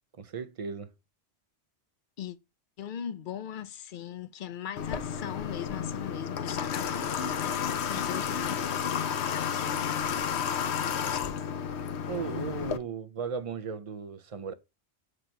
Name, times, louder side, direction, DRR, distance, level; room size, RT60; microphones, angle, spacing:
voice 1, 0.2-0.9 12.1-14.5, right 5 dB, 45° right, 0.5 m, -36 dB
voice 2, 2.8-10.5, left 9 dB, 55° left, 0.6 m, -40 dB
Water / Water tap faucet, 4.8-12.8, left 7 dB, 75° left, 0.9 m, -31 dB
8.0 x 2.9 x 5.4 m
omnidirectional pair, 1.2 m